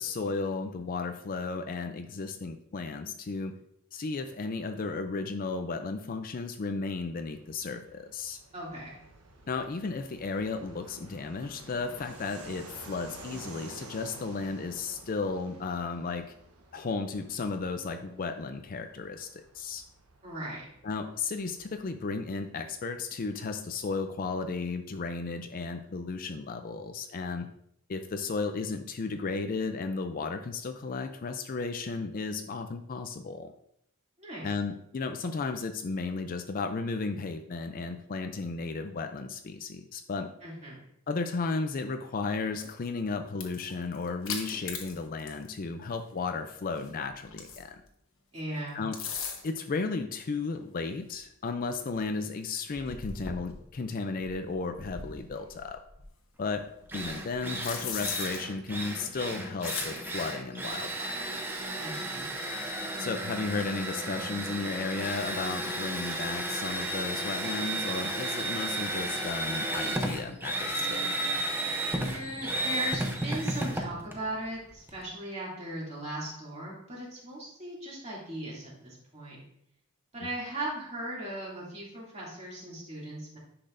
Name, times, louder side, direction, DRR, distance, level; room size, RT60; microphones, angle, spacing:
voice 1, 0.0-3.5 3.9-8.4 9.5-16.3 16.7-19.8 20.8-27.5 27.9-33.5 34.4-40.3 41.1-47.8 48.7-49.0 49.4-55.8 56.4-56.6 56.9-61.5 63.0-71.3, left 4 dB, 40° left, 7 dB, 0.4 m, -34 dB
Fixed-wing aircraft airplane, 7.1-23.3, right 2 dB, 85° right, 1.1 m, -51 dB
voice 2, 8.5-9.0 20.2-20.7 34.2-34.5 40.4-40.8 48.3-48.9 61.8-62.3 72.0-79.4 80.1-83.4, right 1 dB, 30° right, -5 dB, 2.6 m, -38 dB
sound 1, 42.6-42.9 43.3-45.5 45.8-45.9 46.7-47.8 48.7-49.6 50.6-50.7 51.1-51.2 51.6-51.7 51.9-52.0 52.7-53.7 54.2-56.1 56.5-58.4 59.6-59.9, left 6 dB, 65° left, 1.2 m, -39 dB
Drill, 56.5-56.6 56.9-75.0, right 1 dB, 10° right, 0.7 m, -33 dB
10.0 x 5.9 x 2.6 m, 0.73 s
head